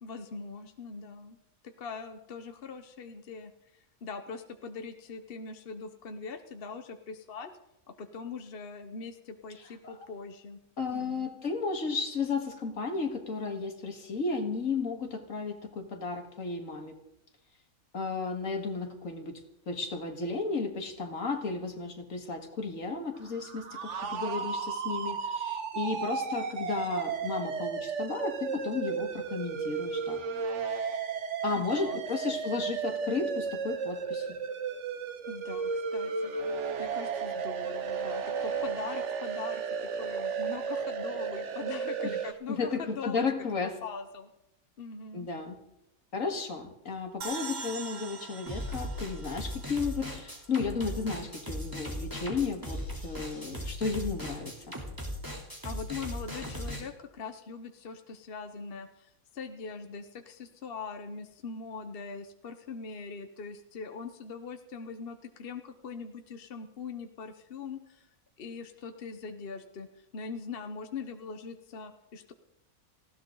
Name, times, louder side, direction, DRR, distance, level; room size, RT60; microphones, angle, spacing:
voice 1, 0.0-1.4 1.6-7.5 7.9-10.6 10.9-11.3 31.5-32.0 32.3-32.4 35.3-39.6 40.0-43.2 43.8-44.3 44.8-45.3 55.6-68.1 68.4-72.3, left 5 dB, 45° left, 7 dB, 1.0 m, -42 dB
voice 2, 10.8-16.9 17.9-19.4 19.7-30.2 31.4-34.4 42.0-42.2 42.5-43.7 45.1-45.6 46.1-54.7, left 4 dB, 65° left, 4 dB, 2.3 m, -33 dB
sound 1, 23.3-42.3, right 5 dB, 55° right, 1.3 m, -34 dB
sound 2, 47.2-50.5, right 4 dB, 35° right, 1.1 m, -43 dB
sound 3, 48.5-56.8, equal, 15° right, 3.3 m, -38 dB
19.5 x 16.0 x 3.9 m, 0.86 s
omnidirectional pair, 1.5 m